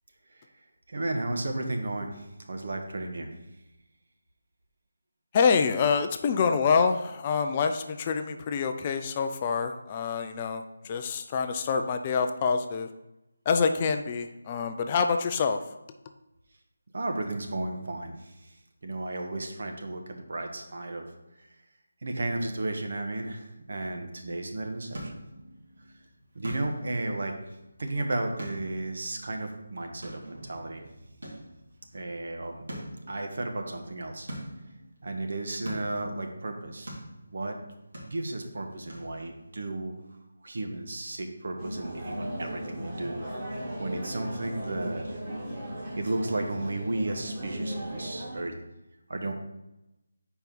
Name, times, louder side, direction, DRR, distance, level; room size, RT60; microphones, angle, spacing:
voice 1, 0.9-3.3 16.9-21.1 21.4-21.5 22.0-25.1 26.3-27.4 27.8-30.8 31.9-32.6 33.1-34.3 35.0-36.9 37.3-37.6 38.1-40.0 40.4-45.2 46.0-48.5 49.1-49.3, right 2 dB, 60° right, 3 dB, 1.0 m, -34 dB
voice 2, 5.3-12.9 13.5-15.6, left 5 dB, 25° left, 6 dB, 0.3 m, -26 dB
sound 1, 24.4-39.6, right 1 dB, 75° right, 2.2 m, -45 dB
sound 2, 41.6-48.4, equal, 25° right, 1.4 m, -36 dB
4.6 x 4.3 x 5.3 m, 0.93 s
figure-of-eight pair, 165°, 0 cm